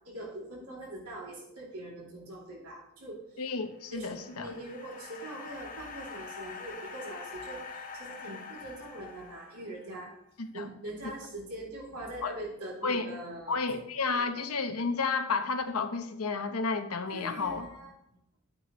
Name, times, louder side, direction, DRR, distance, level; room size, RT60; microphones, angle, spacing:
voice 1, 0.0-3.2 3.9-10.1 10.5-13.6 14.1-14.3 17.1-17.9, right 1 dB, 85° right, -3 dB, 3.1 m, -42 dB
voice 2, 3.4-4.5 10.4-10.7 12.2-12.3 12.8-13.2 13.5-17.7, left 4 dB, 80° left, 6 dB, 1.1 m, -31 dB
sound 1, 3.7-10.1, left 4 dB, 40° left, 1.0 m, -45 dB
12.5 x 8.9 x 3.2 m, 0.77 s
head